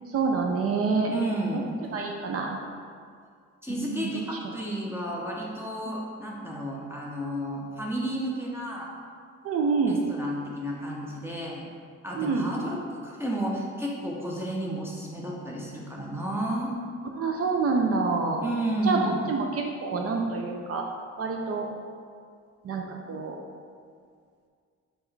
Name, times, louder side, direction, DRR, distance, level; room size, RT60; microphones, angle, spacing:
voice 1, 0.1-1.1 1.5-2.6 3.7-4.2 9.4-10.0 12.2-12.5 17.2-18.4 18.9-20.8 21.2-21.7 22.6-23.4, right 4 dB, 50° right, 1 dB, 0.5 m, -27 dB
voice 2, 1.1-1.6 3.6-8.9 9.9-11.7 12.0-16.7 18.4-19.2, right 1 dB, 10° right, -5 dB, 0.6 m, -32 dB
4.3 x 3.3 x 3.3 m, 2.1 s
cardioid pair, 90°, 30 cm